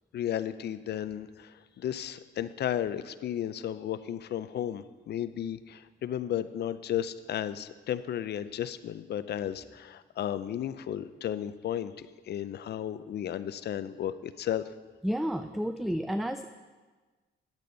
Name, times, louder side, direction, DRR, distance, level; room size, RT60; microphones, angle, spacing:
voice 1, 0.1-14.7, left 10 dB, 55° left, 14 dB, 0.5 m, -34 dB
voice 2, 15.0-16.4, equal, ahead, 8 dB, 0.3 m, -31 dB
10.5 x 8.3 x 3.9 m, 1.3 s
cardioid pair, 90°, 20 cm